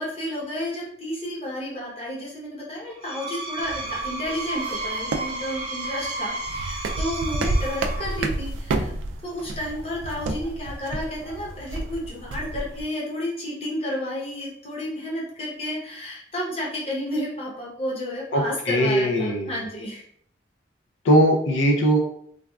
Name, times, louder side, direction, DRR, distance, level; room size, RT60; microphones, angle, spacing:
voice 1, 0.0-8.9 9.2-20.0, left 1 dB, 30° left, -5 dB, 0.8 m, -31 dB
Screech, 2.9-8.4, right 2 dB, 30° right, 0.6 m, -32 dB
sound 1, 3.6-12.8, right 2 dB, 90° right, 0.3 m, -31 dB
voice 2, 18.3-19.6 21.0-22.0, right 1 dB, 90° left, 2 dB, 0.5 m, -20 dB
3.3 x 2.3 x 2.2 m, 0.65 s
head